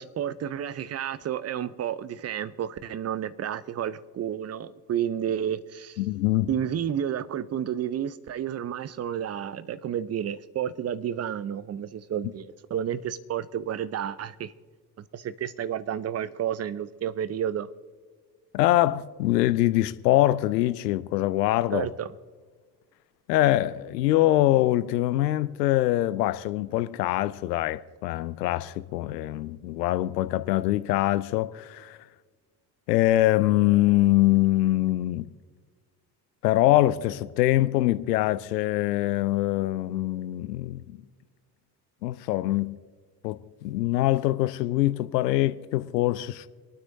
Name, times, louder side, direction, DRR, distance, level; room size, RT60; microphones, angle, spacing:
voice 1, 0.0-6.0 6.5-14.5 15.0-17.7 21.7-22.1, right 9 dB, 30° right, 0.7 m, -31 dB
voice 2, 6.0-6.5 18.5-21.9 23.3-32.0 32.9-35.3 36.4-41.0 42.0-42.8 43.2-46.5, left 15 dB, 70° left, 0.7 m, -24 dB
28.0 x 9.6 x 2.7 m
figure-of-eight pair, 55°, 50 cm